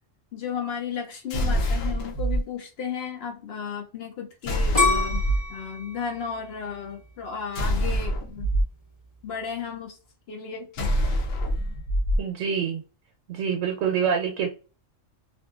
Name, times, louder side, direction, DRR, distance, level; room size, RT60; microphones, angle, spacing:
voice 1, 0.3-5.2 5.5-8.5 9.2-10.0 10.3-11.0, left 7 dB, 60° left, 0.7 m, -34 dB
sound 1, 1.3-2.4 4.4-5.5 7.5-8.6 10.7-12.2, equal, 90° left, 1.0 m, -25 dB
sound 2, 4.7-7.7 8.2-8.7, left 3 dB, 30° left, 1.0 m, -27 dB
voice 2, 12.2-12.8 13.3-14.5, right 7 dB, 80° right, 0.9 m, -26 dB
2.6 x 2.5 x 2.3 m
omnidirectional pair, 1.3 m